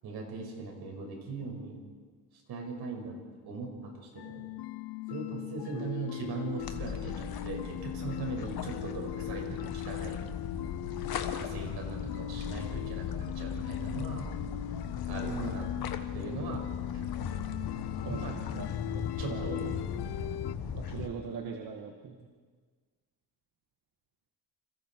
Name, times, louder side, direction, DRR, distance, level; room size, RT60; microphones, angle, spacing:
voice 1, 0.0-1.8 2.5-3.2 3.4-4.5 5.1-10.2 11.3-14.3 15.1-15.7 16.1-16.6 18.1-18.4 19.2-19.8, right 4 dB, 75° right, 1 dB, 6.2 m, -40 dB
sound 1, 4.2-20.5, left 14 dB, 90° left, 0.8 m, -40 dB
sound 2, 6.6-21.1, left 7 dB, 65° left, 1.6 m, -37 dB
voice 2, 15.3-15.6 18.0-18.7 19.2-19.8 20.7-22.3, right 5 dB, 60° right, 2 dB, 2.0 m, -40 dB
29.5 x 26.5 x 4.7 m, 1.5 s
cardioid pair, 150°, 39 cm